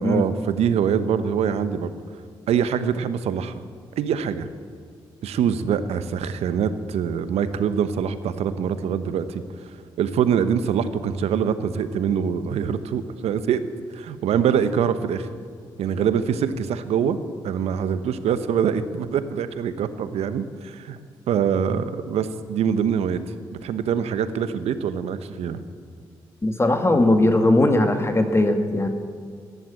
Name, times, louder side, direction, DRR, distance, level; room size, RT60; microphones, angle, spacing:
voice 1, 0.0-2.0 2.5-3.5 4.0-4.5 5.2-9.4 10.0-13.6 13.9-15.3 15.8-17.2 17.4-21.0 21.3-23.2 23.6-25.6, right 8 dB, 70° right, 12 dB, 1.0 m, -24 dB
voice 2, 26.4-28.9, left 1 dB, 25° left, 6 dB, 2.1 m, -19 dB
14.5 x 11.0 x 8.6 m, 2.1 s
hypercardioid pair, 45°, 11 cm